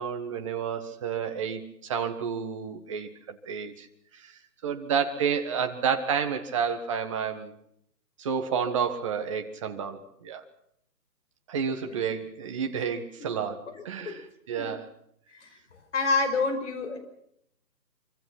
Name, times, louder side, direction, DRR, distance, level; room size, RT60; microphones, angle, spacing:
voice 1, 0.0-3.9 4.1-4.3 4.6-7.5 8.2-10.4 11.5-14.9, right 7 dB, 20° right, 5 dB, 1.5 m, -30 dB
voice 2, 13.7-14.2 14.6-14.7 15.3-15.5 15.9-17.0, left 3 dB, 45° left, 7 dB, 5.4 m, -28 dB
25.0 x 24.5 x 6.0 m, 0.72 s
hypercardioid pair, 165°, 50 cm